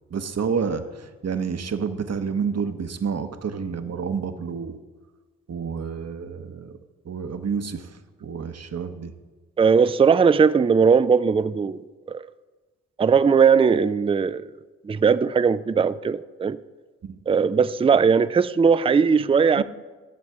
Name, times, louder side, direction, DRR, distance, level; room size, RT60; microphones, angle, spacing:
voice 1, 0.1-4.8 5.5-6.8 7.0-7.9 8.2-9.1 17.0-17.2 19.6-19.7, right 6 dB, 45° right, 1.0 m, -29 dB
voice 2, 9.6-11.8 12.1-12.3 13.0-14.4 14.8-16.6 17.3-19.6, right 6 dB, 15° right, 0.4 m, -19 dB
13.0 x 7.3 x 4.8 m
hypercardioid pair, 40°, 36 cm